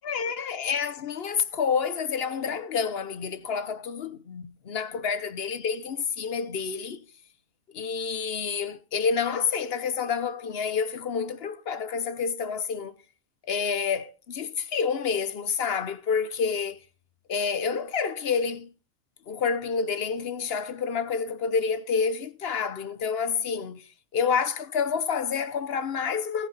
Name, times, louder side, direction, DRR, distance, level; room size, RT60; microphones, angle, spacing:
voice 1, 0.0-7.0 7.7-12.9 13.5-16.8 17.3-18.7 19.3-23.9 24.1-26.5, left 6 dB, 50° left, 0.9 m, -28 dB
17.5 x 8.7 x 4.1 m
omnidirectional pair, 1.4 m